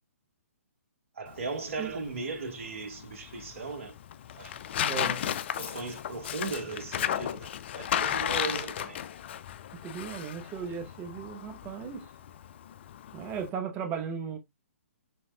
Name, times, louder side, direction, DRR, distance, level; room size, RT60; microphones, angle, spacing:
voice 1, 1.1-3.9 4.3-4.7 5.6-7.5 7.8-9.0, right 3 dB, 60° right, 1.4 m, -37 dB
Tearing, 1.3-13.5, left 10 dB, 50° left, 0.4 m, -35 dB
voice 2, 4.8-5.3 9.7-12.1 13.1-14.4, right 6 dB, 25° right, 1.0 m, -36 dB
6.4 x 3.4 x 2.2 m
figure-of-eight pair, 130°, 8 cm